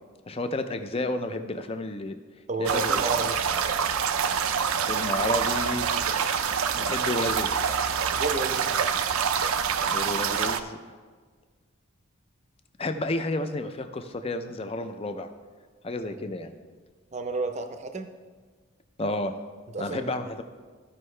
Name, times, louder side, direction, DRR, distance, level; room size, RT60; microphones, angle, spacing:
voice 1, 0.3-2.1 2.6-3.0 4.9-5.9 6.7-7.5 9.9-10.8 12.8-15.3 15.8-16.5 19.0-19.3 19.8-20.4, left 2 dB, 25° left, 7 dB, 0.5 m, -31 dB
voice 2, 2.5-3.4 8.1-8.7 16.1-16.3 17.1-18.1 19.7-20.1, right 3 dB, 30° right, 7 dB, 0.6 m, -31 dB
sound 1, 2.7-10.6, right 7 dB, 80° right, 0.5 m, -26 dB
14.5 x 5.5 x 3.3 m, 1.5 s
head